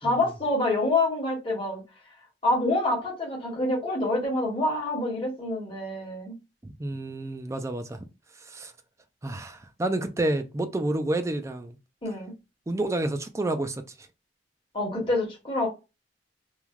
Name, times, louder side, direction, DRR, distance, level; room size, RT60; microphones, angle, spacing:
voice 1, 0.0-1.8 2.4-6.3 12.0-12.3 14.7-15.7, left 2 dB, 30° left, 1.3 m, -26 dB
voice 2, 6.6-8.0 8.5-8.7 9.2-11.8 12.7-13.8, right 2 dB, 15° right, 0.4 m, -29 dB
3.2 x 2.2 x 2.3 m
head